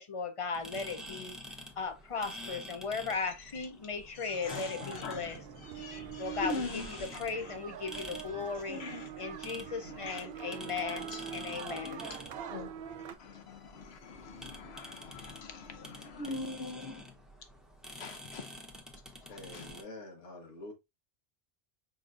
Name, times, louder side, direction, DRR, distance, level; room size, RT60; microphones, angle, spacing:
voice 1, 0.0-1.3 1.8-5.4 6.2-8.8 9.2-12.0, left 5 dB, 45° left, 0.4 m, -37 dB
sound 1, 0.5-19.8, left 1 dB, ahead, 0.7 m, -49 dB
voice 2, 4.2-5.4 5.7-7.4 7.9-8.0 8.7-9.3 9.9-10.3 11.1-11.2 11.7-12.2 12.5-12.9 13.2-17.0 18.0-18.6 19.5-19.6, left 3 dB, 65° left, 1.1 m, -42 dB
sound 2, 4.3-13.1, right 9 dB, 65° right, 0.8 m, -44 dB
voice 3, 19.3-20.7, left 2 dB, 85° left, 1.6 m, -46 dB
5.4 x 4.0 x 2.4 m
omnidirectional pair, 1.2 m